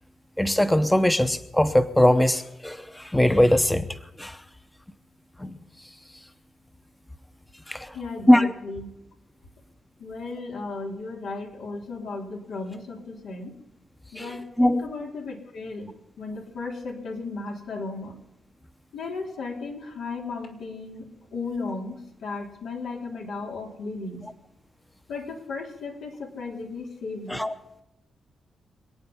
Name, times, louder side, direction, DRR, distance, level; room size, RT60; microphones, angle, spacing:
voice 1, 0.4-4.4 5.4-5.6 7.7-8.0 8.3-8.5 14.2-14.8 27.3-27.5, left 1 dB, 10° left, 10 dB, 0.8 m, -21 dB
voice 2, 7.9-8.9 10.0-13.6 14.1-18.2 18.9-24.3 25.1-27.4, left 3 dB, 90° left, -1 dB, 3.7 m, -35 dB
26.0 x 8.8 x 5.6 m, 0.86 s
cardioid pair, 95°, 0 cm